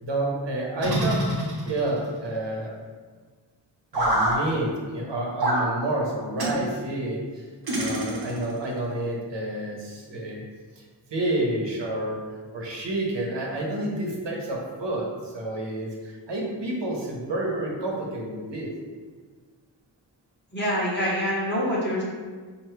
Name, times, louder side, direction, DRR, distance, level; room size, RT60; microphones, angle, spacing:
voice 1, 0.0-1.2 1.7-2.7 3.9-7.4 7.8-10.4 11.1-12.2 12.5-18.7, right 1 dB, 90° right, -2 dB, 1.0 m, -29 dB
sound 1, 0.8-2.0 3.9-4.4 5.4-5.7 6.4-6.6 7.7-8.5, right 1 dB, 60° right, 1.0 m, -25 dB
voice 2, 20.5-22.0, equal, 25° left, -6 dB, 1.0 m, -25 dB
4.5 x 2.7 x 3.1 m, 1.5 s
wide cardioid pair, 115°, 42 cm